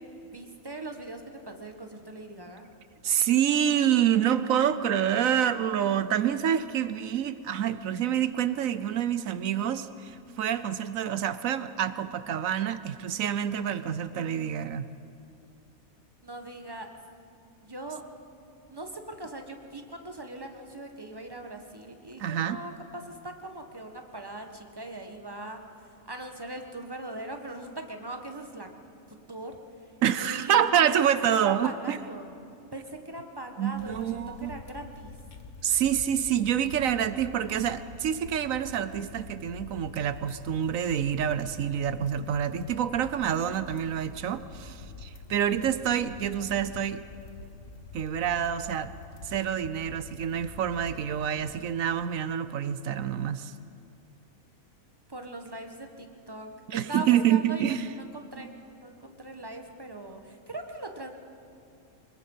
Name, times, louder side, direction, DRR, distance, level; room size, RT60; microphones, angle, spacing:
voice 1, 0.2-2.7 16.2-16.9 17.6-18.0 18.7-25.6 26.0-28.7 29.1-29.6 30.2-30.6 31.0-32.3 32.7-35.1 55.1-56.5 56.9-61.1, right 2 dB, 15° right, 4 dB, 1.4 m, -40 dB
voice 2, 3.0-14.9 22.2-22.6 30.0-32.0 33.6-34.5 35.6-47.0 47.9-48.9 49.2-53.5 56.7-57.8, right 9 dB, 70° right, 13 dB, 1.1 m, -27 dB
sound 1, 33.7-52.1, left 4 dB, 85° left, 1.7 m, -46 dB
24.0 x 21.5 x 5.6 m, 2.6 s
omnidirectional pair, 1.5 m